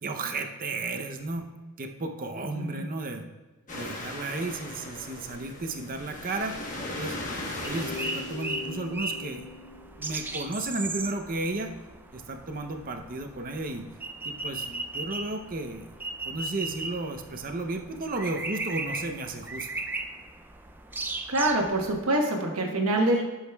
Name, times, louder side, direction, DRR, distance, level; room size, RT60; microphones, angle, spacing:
voice 1, 0.0-1.5 1.8-3.2 3.7-6.6 6.9-7.2 7.6-9.4 10.0-11.7 12.1-13.8 14.2-15.8 16.2-19.7, right 2 dB, 40° right, 5 dB, 0.7 m, -33 dB
voice 2, 2.5-2.9 21.3-23.2, right 1 dB, 85° right, 1 dB, 1.2 m, -25 dB
sound 1, 3.7-8.9, left 1 dB, 35° left, 1.2 m, -38 dB
sound 2, 7.6-22.1, right 2 dB, 10° right, 0.3 m, -37 dB
sound 3, 7.8-11.4, left 4 dB, 60° left, 0.5 m, -41 dB
11.5 x 6.3 x 2.3 m, 1.2 s
head